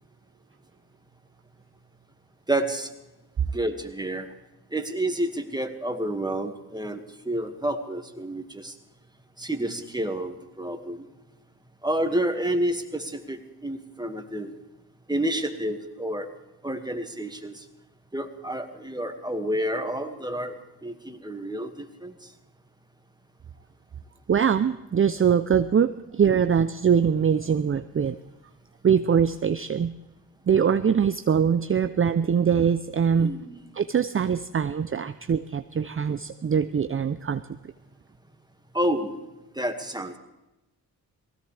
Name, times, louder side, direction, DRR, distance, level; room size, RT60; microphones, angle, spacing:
voice 1, 2.5-2.9 3.5-4.3 4.7-8.7 9.4-11.0 11.8-14.5 15.1-16.3 16.6-17.6 18.1-20.6 20.8-22.1 33.2-33.6 38.7-39.2 39.6-40.2, right 1 dB, 10° right, 6 dB, 2.0 m, -29 dB
voice 2, 24.3-28.2 28.8-29.9 30.5-33.3 33.7-37.4, right 7 dB, 35° right, 11 dB, 0.6 m, -23 dB
19.5 x 16.5 x 3.4 m, 0.99 s
cardioid pair, 55°, 39 cm